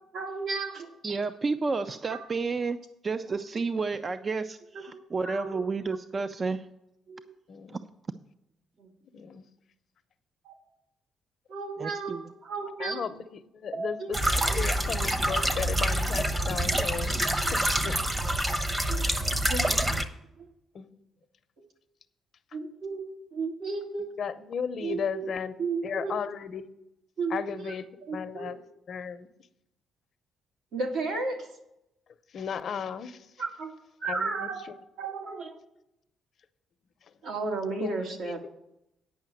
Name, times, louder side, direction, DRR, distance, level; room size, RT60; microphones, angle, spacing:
voice 1, 0.1-0.9 2.1-2.3 4.7-5.6 7.1-7.2 8.8-8.9 10.4-10.5 11.5-13.0 13.7-14.1 14.5-14.6 18.7-19.0 19.5-20.0 20.4-20.5 22.5-23.1 23.3-24.1 24.8-25.3 25.6-26.2 27.2-28.5 30.7-31.5 33.4-33.7 34.0-34.6 35.0-35.6 37.2-38.5, right 3 dB, 75° right, 1 dB, 2.0 m, -34 dB
voice 2, 1.0-2.8 3.0-6.7 11.8-12.3, right 4 dB, 35° right, 11 dB, 0.4 m, -31 dB
voice 3, 7.5-7.8 9.1-9.5 12.8-14.2 14.5-17.4 17.8-18.0 20.7-20.9 24.2-25.5 25.8-26.7 27.3-28.6 28.9-29.3 32.3-33.3 34.1-34.8 37.8-37.9 38.2-38.3, left 7 dB, 60° left, 11 dB, 0.7 m, -35 dB
sound 1, 14.1-20.0, right 1 dB, 20° right, 0.9 m, -26 dB
9.3 x 5.7 x 7.6 m, 0.83 s
cardioid pair, 90°, 0 cm